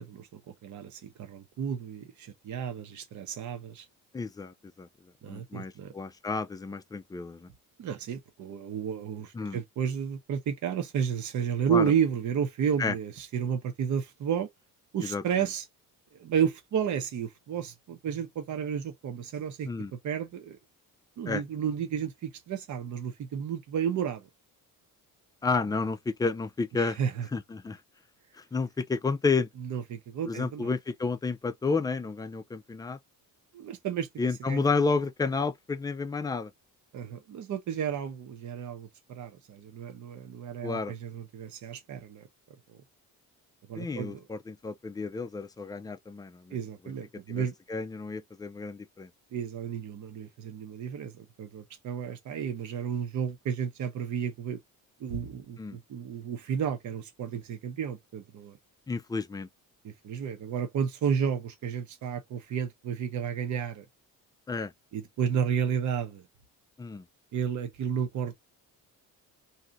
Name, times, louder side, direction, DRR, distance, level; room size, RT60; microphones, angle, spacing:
voice 1, 0.0-3.9 5.2-5.9 7.8-14.5 14.9-15.6 16.2-20.6 21.2-24.3 26.8-27.3 29.6-30.7 33.5-34.7 36.9-42.3 43.7-44.3 46.5-47.5 49.3-54.6 55.0-58.6 59.8-63.8 64.9-66.2 67.3-68.3, right 8 dB, 55° right, 0.9 m, -32 dB
voice 2, 4.1-4.9 5.3-7.5 9.3-9.6 11.7-11.9 12.8-12.9 15.0-15.2 19.7-19.9 21.3-21.4 25.4-27.0 27.3-27.8 28.5-29.5 30.2-33.0 34.2-36.5 40.6-40.9 43.7-46.6 47.3-49.1 55.6-55.8 58.9-59.5 64.5-64.7 66.8-67.0, left 4 dB, 10° left, 0.3 m, -31 dB
2.8 x 2.4 x 3.9 m
cardioid pair, 135°, 35 cm